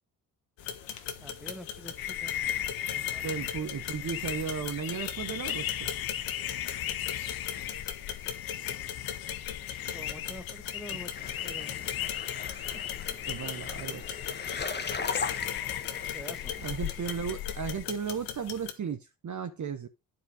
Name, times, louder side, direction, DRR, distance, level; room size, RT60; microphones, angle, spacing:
sound 1, 0.6-18.7, left 9 dB, 70° left, 1.3 m, -40 dB
voice 1, 1.2-2.3 2.9-3.2 9.9-11.1 11.4-11.8 16.1-16.5, equal, ahead, 1.5 m, -46 dB
sound 2, 2.0-17.9, left 12 dB, 50° left, 0.7 m, -37 dB
voice 2, 3.2-5.9 13.3-14.2 16.6-19.9, right 7 dB, 40° right, 1.0 m, -35 dB
sound 3, 11.1-16.9, left 4 dB, 20° left, 1.2 m, -39 dB
9.6 x 4.8 x 4.9 m
hypercardioid pair, 45°, 47 cm